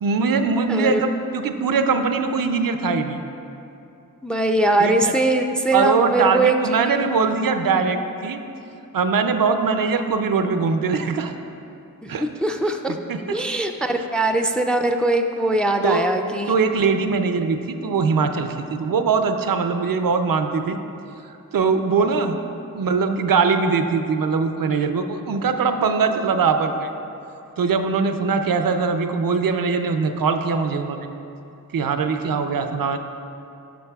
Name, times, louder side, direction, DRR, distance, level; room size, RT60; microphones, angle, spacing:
voice 1, 0.0-3.2 4.8-5.1 5.7-8.4 8.9-11.3 12.1-12.3 13.1-13.4 15.8-16.0 16.5-20.8 21.5-22.4 22.7-26.9 27.6-31.1 31.7-33.0, right 5 dB, 80° right, 7 dB, 0.5 m, -21 dB
voice 2, 0.7-1.0 4.2-7.1 12.0-13.0 13.3-16.6, right 2 dB, 5° left, 5 dB, 0.4 m, -21 dB
11.0 x 5.9 x 2.3 m, 2.8 s
wide cardioid pair, 50°, 34 cm